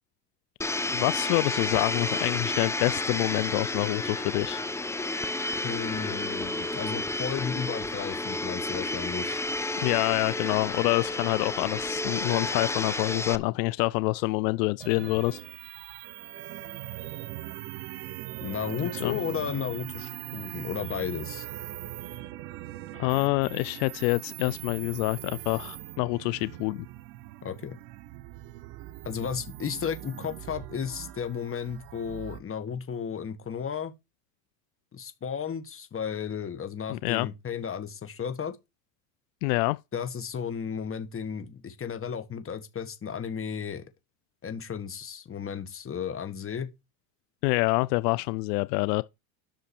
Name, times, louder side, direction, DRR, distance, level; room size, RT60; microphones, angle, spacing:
Domestic sounds home sounds, 0.6-13.4, left 2 dB, 5° left, 0.4 m, -31 dB
voice 1, 0.9-4.6 9.8-15.4 19.0-19.2 22.9-26.9 36.9-37.3 39.4-39.8 47.4-49.0, left 24 dB, 85° left, 0.6 m, -27 dB
voice 2, 5.6-9.4 18.4-21.5 27.4-27.8 29.0-33.9 34.9-38.6 39.9-43.8 44.4-46.7, left 7 dB, 25° left, 1.7 m, -34 dB
sound 1, 14.8-32.4, right 15 dB, 85° right, 1.0 m, -41 dB
10.5 x 6.2 x 4.5 m
supercardioid pair, 105°, 47 cm